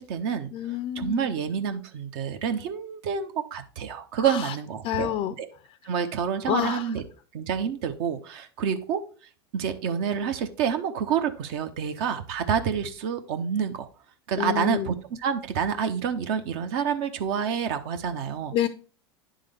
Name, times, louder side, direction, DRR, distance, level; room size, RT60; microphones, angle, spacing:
voice 1, 0.0-0.5 1.0-5.1 5.4-5.5 5.9-7.0 7.3-9.0 9.5-13.9 14.3-18.5, right 7 dB, 60° right, 7 dB, 0.9 m, -28 dB
voice 2, 0.5-1.3 4.2-4.5 4.8-5.3 6.5-6.9 14.4-14.9 18.5-18.7, left 11 dB, 45° left, 11 dB, 0.5 m, -28 dB
9.8 x 3.7 x 3.4 m, 0.38 s
hypercardioid pair, 95°, 15 cm